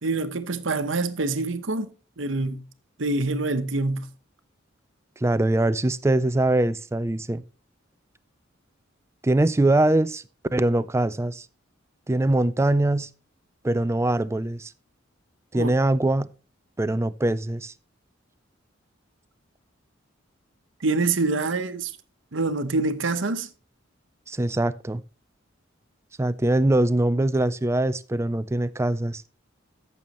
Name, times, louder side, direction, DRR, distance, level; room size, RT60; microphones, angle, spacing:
voice 1, 0.0-2.6 3.0-4.1 15.5-15.7 20.8-21.9 22.3-23.5, right 3 dB, 70° right, 1.0 m, -26 dB
voice 2, 5.2-7.4 9.2-10.2 10.5-11.5 12.1-13.1 13.6-14.7 15.5-16.3 16.8-17.7 24.3-25.0 26.2-29.2, right 1 dB, 15° right, 0.4 m, -22 dB
14.0 x 7.0 x 3.0 m
head